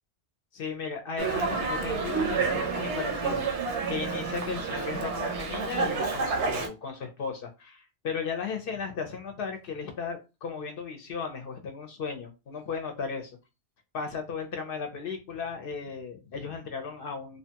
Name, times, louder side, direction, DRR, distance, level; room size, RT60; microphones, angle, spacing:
voice 1, 0.5-3.5 3.9-13.3 13.9-17.4, left 5 dB, 60° left, 0.7 m, -36 dB
Dog, 1.2-6.7, right 4 dB, 80° right, 0.9 m, -29 dB
2.7 x 2.2 x 2.8 m
omnidirectional pair, 1.2 m